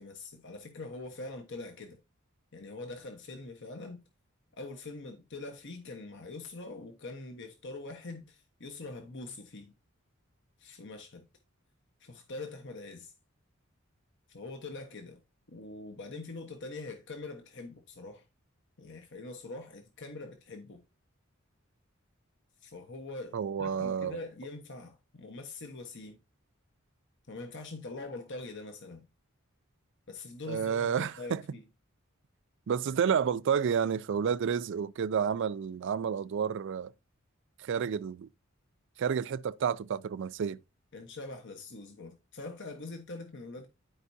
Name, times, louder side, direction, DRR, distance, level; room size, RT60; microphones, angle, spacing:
voice 1, 0.0-2.0 2.5-4.0 4.5-9.7 10.6-11.2 12.0-13.1 14.3-15.2 15.5-18.2 18.8-20.8 22.6-26.2 27.3-29.0 30.1-31.7 40.9-43.7, left 3 dB, 60° left, 1.1 m, -43 dB
voice 2, 23.3-24.2 30.5-31.4 32.7-36.9 37.6-38.3 39.0-40.6, right 7 dB, 60° right, 0.4 m, -30 dB
12.5 x 4.6 x 2.7 m
head